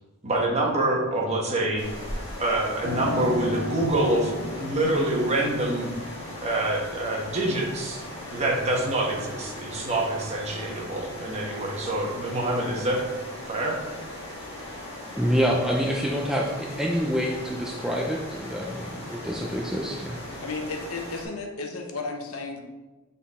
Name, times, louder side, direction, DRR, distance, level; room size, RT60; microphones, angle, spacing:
voice 1, 0.2-1.8 2.4-5.9 6.4-8.0 8.3-13.0 13.5-13.8, right 1 dB, 30° right, -1 dB, 1.2 m, -26 dB
sound 1, 1.8-21.2, left 1 dB, 30° left, 1.9 m, -39 dB
Piano, 2.8-11.3 11.7-12.7, left 2 dB, 50° left, 2.0 m, -39 dB
voice 2, 15.2-20.2, equal, ahead, -2 dB, 0.5 m, -27 dB
voice 3, 20.4-22.6, left 3 dB, 80° left, 4 dB, 0.9 m, -33 dB
7.7 x 4.0 x 4.2 m, 1.2 s
head